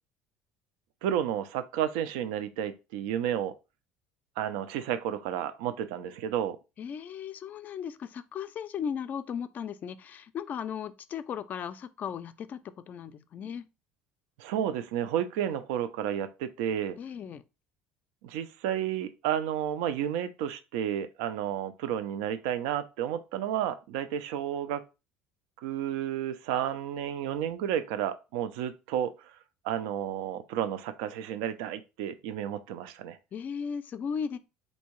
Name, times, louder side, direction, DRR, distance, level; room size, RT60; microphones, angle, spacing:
voice 1, 1.0-3.5 4.4-6.6 14.4-17.0 18.2-24.8 25.6-29.1 29.6-33.2, right 10 dB, 85° right, 0.4 m, -31 dB
voice 2, 6.8-12.6 12.9-13.7 17.0-17.4 33.3-34.4, left 7 dB, 40° left, 0.3 m, -36 dB
3.4 x 2.7 x 3.0 m
cardioid pair, 115°, 5 cm